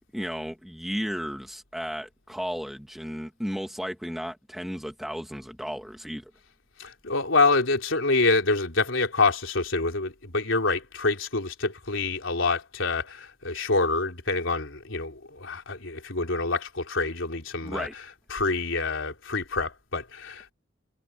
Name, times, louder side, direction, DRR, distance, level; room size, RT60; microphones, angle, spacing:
voice 1, 0.1-6.3 17.6-17.9, equal, ahead, 2.8 m, -34 dB
voice 2, 6.8-20.5, left 3 dB, 90° left, 3.6 m, -26 dB
head